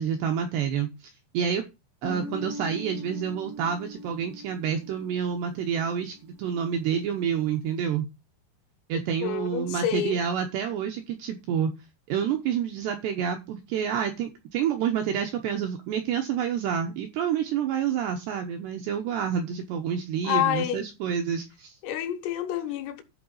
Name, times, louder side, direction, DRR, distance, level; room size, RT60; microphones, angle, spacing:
voice 1, 0.0-1.6 2.0-8.1 8.9-11.7 12.1-21.8, right 8 dB, 75° right, 2.5 m, -28 dB
Guitar, 2.0-6.6, right 1 dB, 10° right, 0.7 m, -41 dB
voice 2, 9.2-10.2 20.2-20.8 21.8-23.0, left 11 dB, 80° left, 4.0 m, -28 dB
12.0 x 4.8 x 5.4 m
omnidirectional pair, 5.9 m